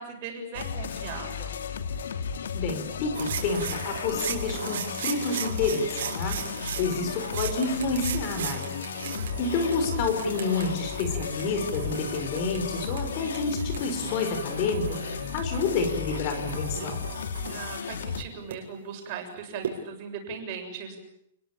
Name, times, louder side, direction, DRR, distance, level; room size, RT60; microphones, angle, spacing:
voice 1, 0.0-1.5 9.1-9.6 17.4-21.0, right 6 dB, 30° right, 4 dB, 7.2 m, -39 dB
sound 1, 0.5-18.2, left 6 dB, 90° left, 2.8 m, -34 dB
voice 2, 2.5-8.7 9.2-17.0, left 4 dB, 30° left, 8 dB, 4.6 m, -29 dB
sound 2, 3.1-18.5 19.6-19.7, right 8 dB, 60° right, 6.4 m, -38 dB
29.5 x 21.5 x 8.8 m, 0.75 s
hypercardioid pair, 180°, 0 cm